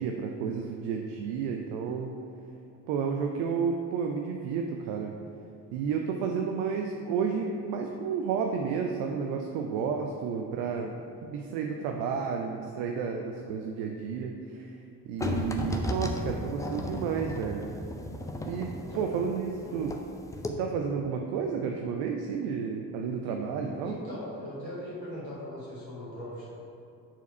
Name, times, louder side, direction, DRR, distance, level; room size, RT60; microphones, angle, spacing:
voice 1, 0.0-2.1 2.9-5.1 5.7-10.9 11.3-14.7 15.1-17.7 18.4-19.9 20.6-24.0, right 6 dB, 60° right, 2 dB, 0.6 m, -31 dB
sound 1, 15.2-20.1 20.3-20.5, left 1 dB, 5° left, 0.4 m, -34 dB
voice 2, 18.6-19.2 19.6-19.9 23.2-23.4 23.6-26.5, equal, 90° left, -8 dB, 1.3 m, -40 dB
4.6 x 4.4 x 5.3 m, 2.7 s
figure-of-eight pair, 40°, 50 cm